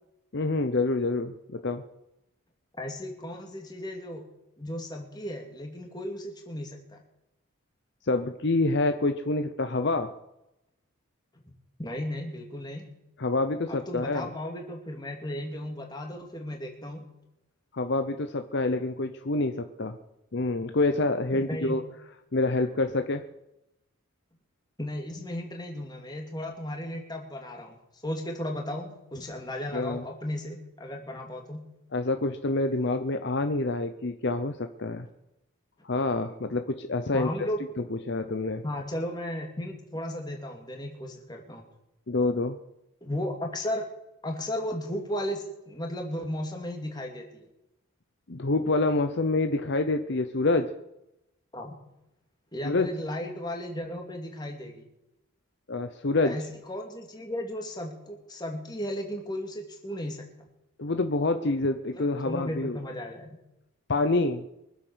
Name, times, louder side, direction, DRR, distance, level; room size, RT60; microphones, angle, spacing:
voice 1, 0.3-1.8 8.1-10.1 13.2-14.3 17.7-20.0 20.3-21.8 22.3-23.3 29.7-30.0 31.9-35.1 35.8-37.3 37.9-38.6 42.1-42.6 48.3-50.7 52.6-52.9 55.7-56.4 60.8-62.8 63.9-64.4, left 2 dB, 50° left, 8 dB, 0.8 m, -27 dB
voice 2, 2.8-4.2 4.6-7.0 11.8-12.9 13.7-17.1 21.3-21.8 24.8-27.8 28.0-31.6 37.1-37.6 38.6-41.7 43.0-43.9 44.2-47.5 51.5-51.7 52.5-54.9 56.2-60.5 62.0-63.4, left 1 dB, 20° left, 2 dB, 2.4 m, -35 dB
24.0 x 8.0 x 6.3 m, 0.89 s
head